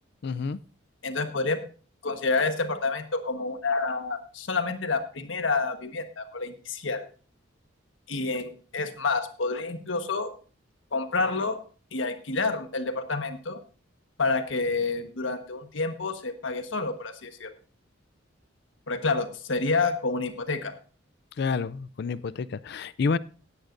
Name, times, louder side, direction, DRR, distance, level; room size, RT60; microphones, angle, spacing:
voice 1, 0.2-0.6 21.4-23.2, left 4 dB, 55° left, 19 dB, 0.4 m, -29 dB
voice 2, 1.0-1.6 2.0-7.1 8.1-10.3 10.9-11.6 11.9-13.6 14.2-17.5 18.9-20.7, left 3 dB, 80° left, 7 dB, 1.4 m, -28 dB
17.0 x 9.8 x 2.6 m, 0.38 s
head